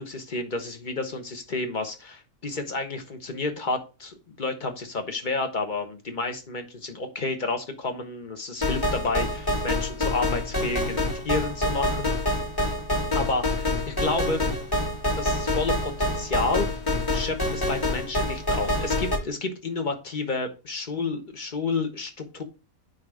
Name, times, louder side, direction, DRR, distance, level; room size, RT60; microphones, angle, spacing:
voice 1, 0.0-12.1 13.1-14.4 15.2-16.8 17.1-22.4, left 3 dB, 35° left, 6 dB, 1.2 m, -30 dB
sound 1, 8.6-19.2, left 1 dB, 15° left, 1.5 m, -26 dB
9.3 x 3.1 x 4.9 m, 0.30 s
omnidirectional pair, 1.6 m